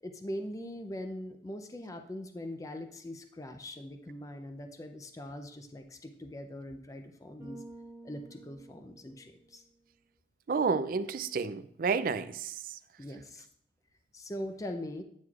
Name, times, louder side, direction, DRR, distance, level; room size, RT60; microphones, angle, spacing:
voice 1, 0.0-7.6 8.0-9.6 13.0-13.5 14.1-15.0, left 1 dB, 20° left, 0.5 m, -41 dB
Bass guitar, 7.4-9.7, right 2 dB, 15° right, 1.5 m, -51 dB
voice 2, 10.5-12.6, right 5 dB, 50° right, 0.3 m, -30 dB
9.1 x 6.3 x 2.4 m
head